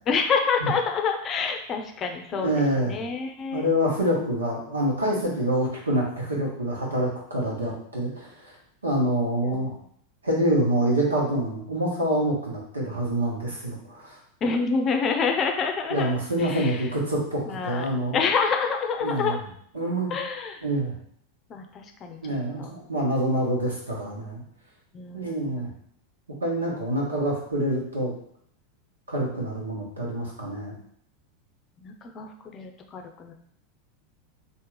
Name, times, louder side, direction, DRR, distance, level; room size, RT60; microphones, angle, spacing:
voice 1, 0.1-3.7 9.4-9.6 14.4-16.9 17.5-17.9 18.1-19.4 20.1-20.6 21.5-22.2 22.6-22.7 24.9-25.6 31.8-33.3, left 5 dB, 30° left, 4 dB, 0.6 m, -27 dB
voice 2, 2.3-3.0 3.5-8.5 8.8-9.7 10.2-14.2 15.9-18.2 19.0-19.4 19.7-20.1 20.6-20.9 22.2-24.4 25.1-25.7 26.4-28.1 29.1-30.8, right 1 dB, 80° right, -3 dB, 1.4 m, -26 dB
3.6 x 2.8 x 4.6 m, 0.66 s
figure-of-eight pair, 85°, 0 cm